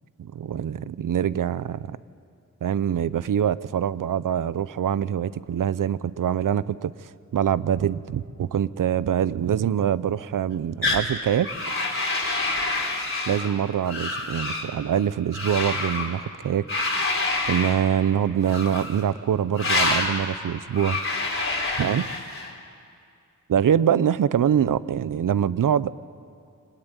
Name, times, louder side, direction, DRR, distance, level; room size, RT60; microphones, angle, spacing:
voice 1, 0.3-2.0 2.6-11.5 13.3-16.7 17.5-21.0 21.8-22.1 23.5-25.9, right 9 dB, 90° right, 17 dB, 0.6 m, -24 dB
sound 1, 10.8-11.1 11.4-13.5 13.9-14.7 15.3-16.1 16.7-17.8 18.4-19.0 19.5-20.1 20.7-22.5, left 2 dB, 40° left, 3.9 m, -27 dB
23.5 x 20.0 x 9.1 m, 2.4 s
wide cardioid pair, 70°, 31 cm